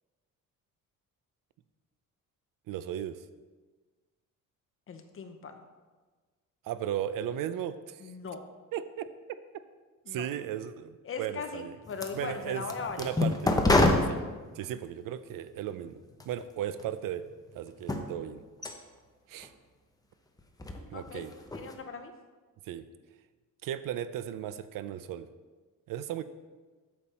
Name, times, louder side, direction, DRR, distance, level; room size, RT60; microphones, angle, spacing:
voice 1, 2.7-3.2 6.6-8.0 8.7-9.1 10.1-11.7 12.1-12.6 13.0-13.5 14.1-14.2 14.5-16.0 16.3-17.2 17.5-18.4 19.3-19.5 20.9-21.3 22.7-22.9 23.6-25.3 25.9-26.2, right 10 dB, 80° right, 13 dB, 0.5 m, -36 dB
voice 2, 4.9-5.7 8.0-8.4 10.1-10.3 11.0-13.1 20.9-21.2 21.5-22.1, left 5 dB, 40° left, 6 dB, 0.8 m, -39 dB
sound 1, 11.8-14.9 15.6-16.4 16.8-17.5 17.8-18.1 18.6-18.7 19.4-19.5 20.4-20.8 21.1-21.7, left 2 dB, 10° left, 0.7 m, -27 dB
8.7 x 7.2 x 4.2 m, 1.4 s
cardioid pair, 140°, 33 cm